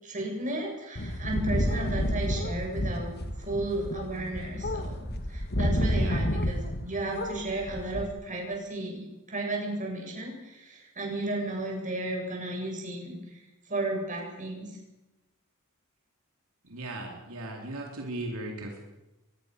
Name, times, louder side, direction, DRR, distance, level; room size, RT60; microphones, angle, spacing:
voice 1, 0.0-3.1 3.4-9.0 9.3-13.4 13.7-14.7, right 2 dB, 35° right, 0 dB, 7.9 m, -34 dB
sound 1, 1.0-6.9 7.1-8.1, equal, 50° left, 2.1 m, -30 dB
voice 2, 5.9-6.2 16.7-18.8, right 2 dB, 75° right, 1 dB, 3.8 m, -37 dB
24.0 x 21.0 x 6.7 m, 1.0 s
head